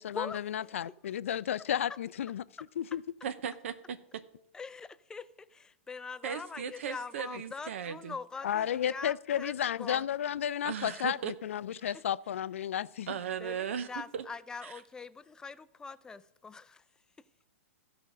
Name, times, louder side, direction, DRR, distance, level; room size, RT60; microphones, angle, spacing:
voice 1, 0.0-2.4 2.8-3.0 8.4-13.1, left 10 dB, 75° left, 0.4 m, -33 dB
voice 2, 3.2-4.2 6.2-8.2 10.6-11.3 11.8-11.9 13.1-14.3 14.6-14.8, right 7 dB, 70° right, 0.7 m, -37 dB
voice 3, 4.5-10.0 10.9-11.1 13.4-16.8, left 4 dB, 10° left, 0.4 m, -43 dB
14.0 x 5.1 x 6.2 m
hypercardioid pair, 125°, 7 cm